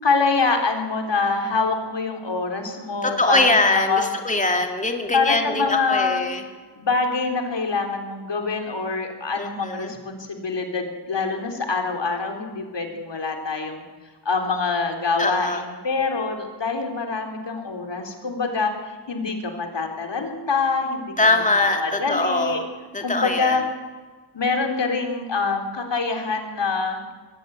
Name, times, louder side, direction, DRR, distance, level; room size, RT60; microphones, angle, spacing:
voice 1, 0.0-4.1 5.1-6.2 6.8-13.8 14.3-21.1 21.6-22.6 23.0-23.6 24.3-27.1, left 4 dB, 70° left, 4 dB, 3.9 m, -25 dB
voice 2, 3.0-6.4 9.4-9.9 15.2-15.6 21.2-22.6 22.9-23.6, left 2 dB, 15° left, 4 dB, 2.4 m, -22 dB
22.5 x 16.0 x 9.5 m, 1.4 s
wide cardioid pair, 80°, 44 cm